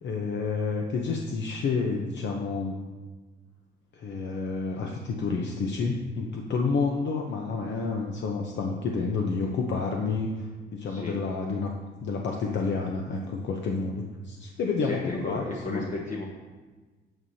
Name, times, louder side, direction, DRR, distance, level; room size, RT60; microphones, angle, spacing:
voice 1, 0.0-2.7 3.9-10.3 10.7-11.7 12.0-15.8, left 4 dB, 65° left, 1 dB, 0.9 m, -29 dB
voice 2, 14.9-16.2, left 2 dB, 40° left, -1 dB, 1.1 m, -33 dB
9.2 x 7.1 x 2.8 m, 1.3 s
cardioid pair, 90°, 20 cm